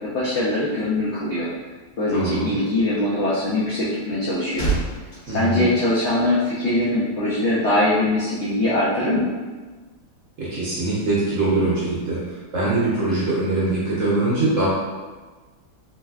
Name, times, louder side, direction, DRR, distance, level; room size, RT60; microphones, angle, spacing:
voice 1, 0.0-1.5 2.0-4.7 5.2-9.3, left 1 dB, 70° left, -8 dB, 0.6 m, -22 dB
voice 2, 2.1-2.5 5.3-5.7 10.4-12.2 12.5-14.7, right 2 dB, 60° right, -7 dB, 0.9 m, -22 dB
sound 1, 4.1-6.5 6.8-7.0, right 3 dB, 45° left, 1.3 m, -30 dB
3.3 x 3.2 x 2.3 m, 1.3 s
omnidirectional pair, 2.0 m